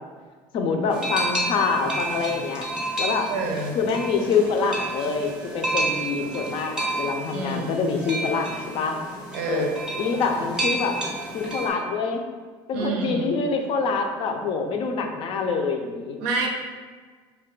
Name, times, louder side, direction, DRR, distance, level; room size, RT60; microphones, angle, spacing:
voice 1, 0.5-2.7 3.0-3.3 3.7-9.0 9.5-9.7 10.0-11.0 11.3-12.2 12.7-16.2, left 4 dB, 55° left, 4 dB, 0.4 m, -25 dB
sound 1, 0.9-11.7, right 2 dB, 5° right, 0.6 m, -30 dB
voice 2, 3.3-3.8 7.3-7.9 9.3-9.7 12.7-13.3 16.2-16.5, right 3 dB, 80° right, 2 dB, 0.5 m, -28 dB
2.2 x 2.2 x 3.7 m, 1.5 s
cardioid pair, 120°, 11 cm